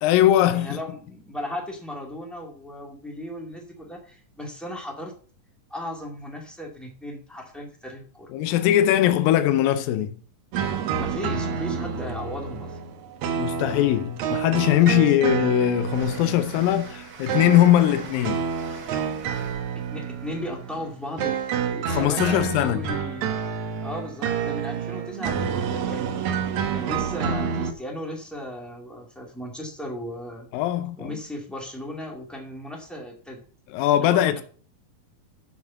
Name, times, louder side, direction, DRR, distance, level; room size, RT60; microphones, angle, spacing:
voice 1, 0.0-0.8 8.3-10.2 13.4-18.5 21.9-22.8 30.5-31.2 33.7-34.4, left 12 dB, 80° left, 2.4 m, -21 dB
voice 2, 0.5-5.1 5.7-8.3 10.9-12.8 15.0-15.1 19.9-23.3 23.8-26.5 26.7-30.5 31.0-33.4 34.0-34.4, left 1 dB, ahead, 0.9 m, -36 dB
sound 1, 10.5-27.7, right 7 dB, 70° right, 2.0 m, -29 dB
Train, 14.9-22.0, right 5 dB, 85° right, 0.8 m, -46 dB
7.2 x 6.8 x 6.9 m
omnidirectional pair, 4.1 m